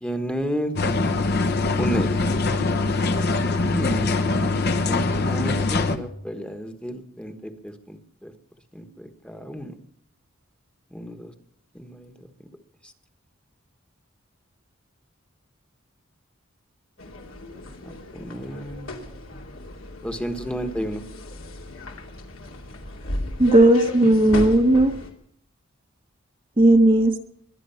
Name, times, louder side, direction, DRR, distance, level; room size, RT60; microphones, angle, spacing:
voice 1, 0.0-0.7 1.8-2.2 3.7-4.6 4.8-8.3 8.7-9.7 10.9-11.3 11.7-12.3 12.8-12.9 17.8-19.0 19.3-19.5 20.0-21.0, equal, 5° left, 6 dB, 1.3 m, -32 dB
sound 1, 0.8-6.0, left 3 dB, 50° left, 1.1 m, -23 dB
sound 2, 17.0-25.1, left 1 dB, 80° left, 2.6 m, -35 dB
voice 2, 23.4-24.9 26.6-27.1, right 1 dB, 25° right, 4 dB, 1.0 m, -16 dB
22.5 x 9.9 x 5.7 m, 0.66 s
head